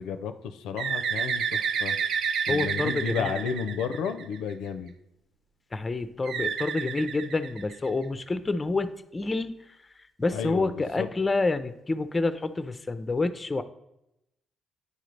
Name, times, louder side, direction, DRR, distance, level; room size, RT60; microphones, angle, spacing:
voice 1, 0.0-2.0 2.5-4.9 10.3-11.1, left 6 dB, 90° left, 9 dB, 0.4 m, -32 dB
Bird, 0.8-4.5 6.3-8.0, right 6 dB, 75° right, 0.4 m, -30 dB
voice 2, 2.5-3.4 5.7-9.5 10.2-13.6, left 3 dB, 25° left, 11 dB, 0.4 m, -28 dB
9.6 x 3.9 x 3.2 m, 0.85 s
cardioid pair, 90°, 0 cm